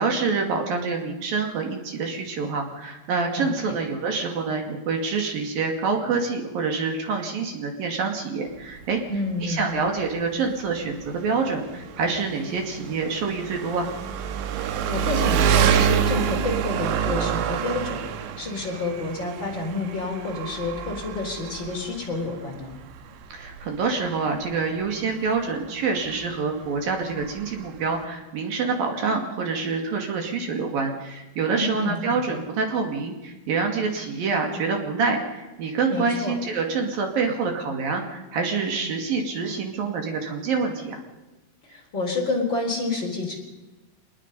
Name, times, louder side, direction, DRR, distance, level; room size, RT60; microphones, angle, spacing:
voice 1, 0.0-9.0 9.4-13.9 23.3-41.0, right 4 dB, 55° right, 3 dB, 3.6 m, -26 dB
voice 2, 3.3-3.8 9.1-9.9 14.6-18.0 18.4-22.8 31.6-32.4 35.9-36.3 41.7-43.4, left 2 dB, 25° left, 0 dB, 4.0 m, -29 dB
Engine, 8.5-28.1, right 8 dB, 85° right, 3.8 m, -28 dB
25.0 x 21.0 x 5.4 m, 1.1 s
omnidirectional pair, 5.7 m